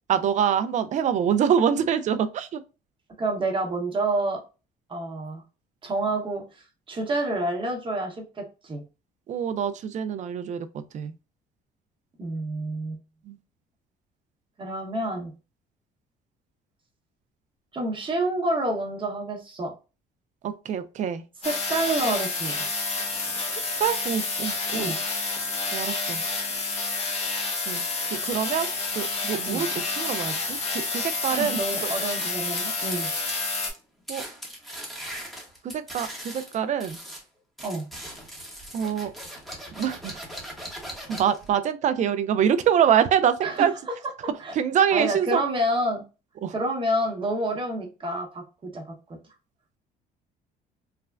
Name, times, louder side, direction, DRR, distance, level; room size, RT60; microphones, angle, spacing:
voice 1, 0.1-2.6 9.3-11.1 13.3-13.4 20.4-21.2 23.5-24.9 25.7-26.2 27.7-28.7 29.0-31.9 34.1-34.2 35.6-37.0 38.7-39.1 39.8-40.2 41.1-43.7 44.6-45.4 46.4-46.5, right 8 dB, 45° right, 0.4 m, -25 dB
voice 2, 3.2-4.4 4.9-5.4 5.8-8.8 12.2-13.0 14.6-15.3 17.7-19.7 21.4-22.7 24.7-25.0 29.5-29.7 31.3-33.4 37.6-37.8 43.4-43.7 44.4-44.5 44.9-46.0 46.5-48.9, right 1 dB, 30° right, 0.9 m, -28 dB
sound 1, 21.4-33.7, left 3 dB, 40° left, 0.9 m, -29 dB
sound 2, 32.2-33.4 33.6-33.8 34.1-37.2 37.6-41.5, equal, ahead, 0.9 m, -39 dB
3.3 x 2.1 x 2.3 m
cardioid pair, 110°, 17 cm